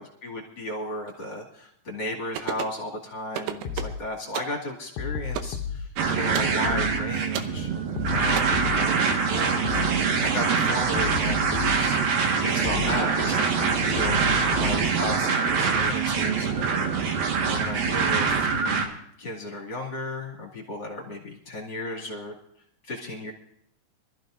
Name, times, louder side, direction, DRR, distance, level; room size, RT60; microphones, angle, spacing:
voice 1, 0.0-7.7 8.1-9.9 10.2-12.0 12.4-16.5 17.4-18.9 19.2-22.3 22.8-23.3, left 1 dB, 35° left, -2 dB, 2.1 m, -34 dB
sound 1, 2.4-2.8 3.3-4.0 4.3-4.6 5.4-5.6 6.3-6.6 7.3-7.6 8.4-8.5, right 11 dB, 85° right, 3.2 m, -32 dB
sound 2, 3.7-4.0 5.0-5.8 6.7-7.0 8.0-8.9 9.7-10.0 11.0-11.9 12.7-13.0 14.0-14.9, left 7 dB, 75° left, 2.6 m, -32 dB
sound 3, 6.0-18.9, right 5 dB, 60° right, 2.9 m, -24 dB
25.5 x 13.5 x 2.6 m, 0.70 s
omnidirectional pair, 5.2 m